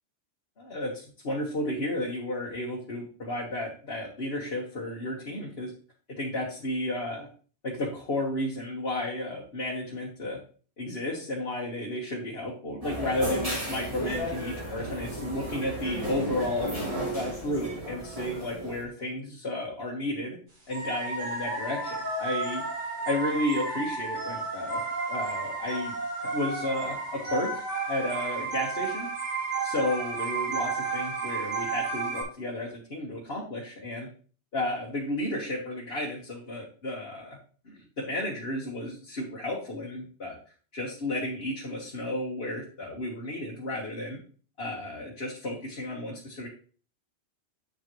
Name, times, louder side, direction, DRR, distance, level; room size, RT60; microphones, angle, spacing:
voice 1, 0.6-5.7 6.2-7.3 7.6-10.4 10.8-16.7 17.1-20.4 20.7-22.6 23.0-24.8 25.1-29.1 29.6-34.1 34.5-37.4 37.6-40.4 40.7-44.2 44.6-46.5, left 1 dB, 60° left, -3 dB, 1.7 m, -33 dB
atmos cafe, 12.8-18.8, right 1 dB, 30° right, 2.9 m, -34 dB
sound 1, 20.7-32.2, right 4 dB, 80° right, 3.9 m, -32 dB
8.0 x 7.7 x 3.1 m, 0.40 s
omnidirectional pair, 1.2 m